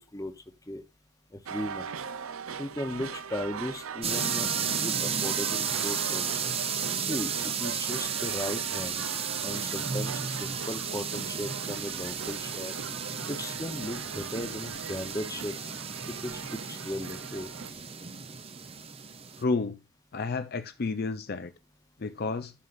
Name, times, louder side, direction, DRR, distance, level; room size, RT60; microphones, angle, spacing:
voice 1, 1.3-1.9 2.6-6.5 7.0-9.0 9.4-12.7 13.3-15.5 16.2-17.5, left 1 dB, 15° left, 0.9 m, -37 dB
sound 1, 1.5-17.7, right 6 dB, 70° right, 0.6 m, -40 dB
sound 2, 4.0-19.4, right 7 dB, 25° right, 0.7 m, -33 dB
voice 2, 19.4-19.8 20.1-21.5 22.0-22.5, left 3 dB, 45° left, 0.5 m, -30 dB
13.0 x 5.5 x 2.5 m
head